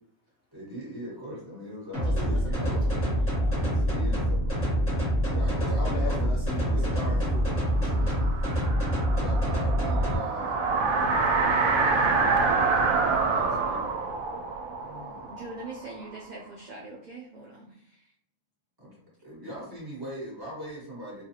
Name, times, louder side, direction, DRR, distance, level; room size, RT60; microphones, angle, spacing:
voice 1, 0.5-3.1 3.6-4.7 5.3-6.3 6.6-7.2 9.1-13.8 14.8-15.3 18.8-18.9 19.2-21.2, equal, 15° right, -6 dB, 1.2 m, -41 dB
sound 1, 1.9-10.1, equal, 10° left, 1.0 m, -26 dB
voice 2, 2.0-3.6 5.2-8.6, left 3 dB, 60° left, -2 dB, 0.6 m, -41 dB
sound 2, 7.4-16.2, right 4 dB, 85° right, 1.0 m, -27 dB
voice 3, 15.3-18.0, right 2 dB, 60° right, -3 dB, 0.4 m, -42 dB
3.3 x 2.3 x 2.7 m, 0.64 s
omnidirectional pair, 1.4 m